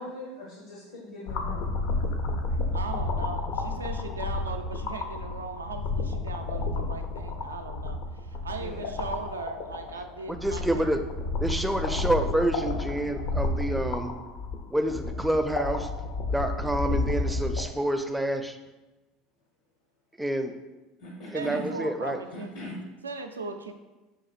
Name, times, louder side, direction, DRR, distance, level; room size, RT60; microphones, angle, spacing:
voice 1, 0.0-1.7 8.5-9.0 21.0-21.6 22.3-22.8, left 1 dB, 75° left, -4 dB, 0.8 m, -41 dB
sound 1, 1.3-17.6, left 2 dB, 60° left, 0.5 m, -31 dB
voice 2, 2.7-11.1 21.3-22.5 23.0-23.7, right 4 dB, 90° right, 6 dB, 0.3 m, -38 dB
voice 3, 10.3-11.0 11.4-14.1 14.7-15.8 16.3-18.6 20.2-20.5 21.3-22.2, right 1 dB, 5° right, 7 dB, 0.4 m, -28 dB
5.8 x 2.5 x 2.4 m, 1.1 s
hypercardioid pair, 75°, 0 cm